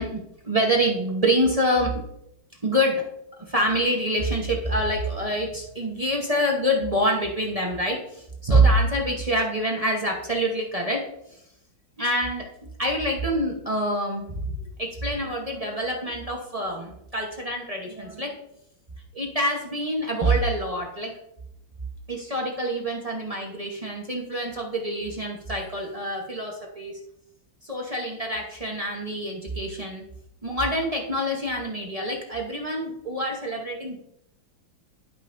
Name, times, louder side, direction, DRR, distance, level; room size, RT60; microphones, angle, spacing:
voice 1, 0.0-1.9 2.6-3.1 3.5-11.0 11.3-11.4 12.0-12.5 12.8-18.3 19.1-21.2 22.1-27.0 27.6-30.0 30.4-34.0, right 1 dB, 30° right, -1 dB, 0.7 m, -26 dB
12.0 x 5.5 x 2.6 m, 0.79 s
omnidirectional pair, 2.1 m